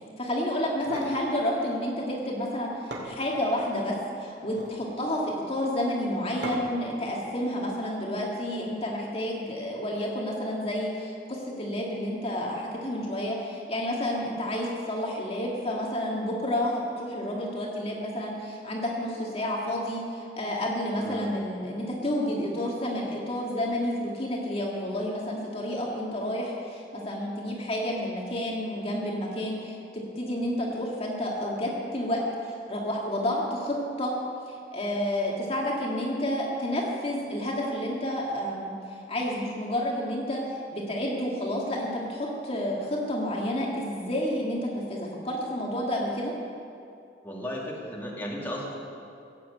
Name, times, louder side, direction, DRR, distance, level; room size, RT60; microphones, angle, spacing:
voice 1, 0.2-34.1 34.5-46.3, left 1 dB, 35° left, -2 dB, 2.0 m, -30 dB
sound 1, 0.6-1.2 2.5-2.6 2.9-3.7 4.4-4.8 6.4-6.9, right 1 dB, 70° right, 2.7 m, -38 dB
voice 2, 21.0-21.3 47.2-48.8, equal, 10° left, -4 dB, 2.1 m, -34 dB
16.0 x 7.8 x 8.4 m, 2.5 s
head